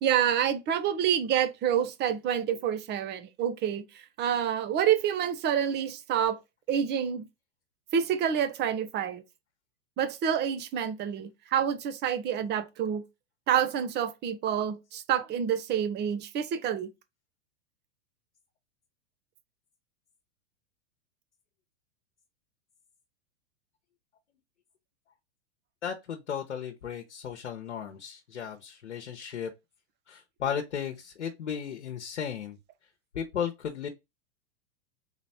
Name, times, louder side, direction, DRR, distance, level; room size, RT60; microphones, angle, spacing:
voice 1, 0.0-3.8 4.2-6.4 6.7-7.2 7.9-9.2 10.0-13.0 13.5-16.9, right 9 dB, 30° right, 0.9 m, -28 dB
voice 2, 25.8-29.5 30.1-32.6 33.1-33.9, left 8 dB, 85° left, 1.0 m, -35 dB
4.0 x 3.1 x 4.2 m
hypercardioid pair, 110°, 34 cm